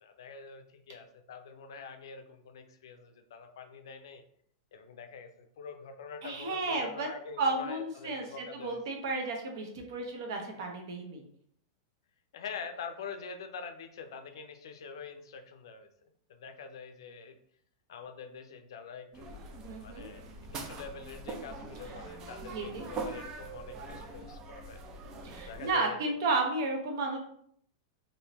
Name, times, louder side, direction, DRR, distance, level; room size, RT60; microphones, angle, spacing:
voice 1, 0.0-4.2 4.7-8.8 12.3-15.9 16.3-17.4 17.9-19.4 19.8-24.8 25.5-26.2, left 5 dB, 75° left, 7 dB, 0.5 m, -45 dB
voice 2, 6.2-7.1 7.4-11.2 19.6-20.1 22.5-22.8 25.2-27.2, right 3 dB, 50° right, 2 dB, 0.8 m, -33 dB
sound 1, 19.1-25.7, right 3 dB, 20° right, 0.4 m, -43 dB
3.5 x 2.7 x 2.9 m, 0.66 s
supercardioid pair, 180°, 2 cm